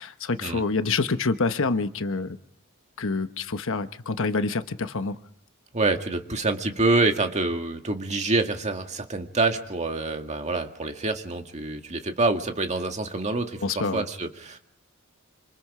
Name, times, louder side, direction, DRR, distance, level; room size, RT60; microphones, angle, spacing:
voice 1, 0.0-2.4 3.0-5.2 13.6-14.0, left 3 dB, 60° left, 1.1 m, -27 dB
voice 2, 5.7-14.6, right 3 dB, 30° right, 2.0 m, -26 dB
26.5 x 26.5 x 5.0 m
head